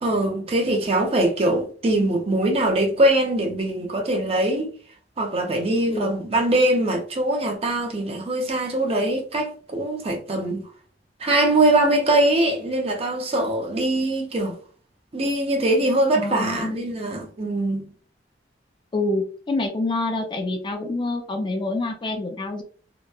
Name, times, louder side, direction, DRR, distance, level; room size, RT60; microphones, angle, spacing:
voice 1, 0.0-4.7 5.2-10.6 11.2-14.6 15.1-17.9, right 1 dB, 35° right, 0.5 m, -22 dB
voice 2, 16.1-16.8 18.9-22.6, left 2 dB, 25° left, 0.3 m, -26 dB
2.8 x 2.1 x 2.2 m
head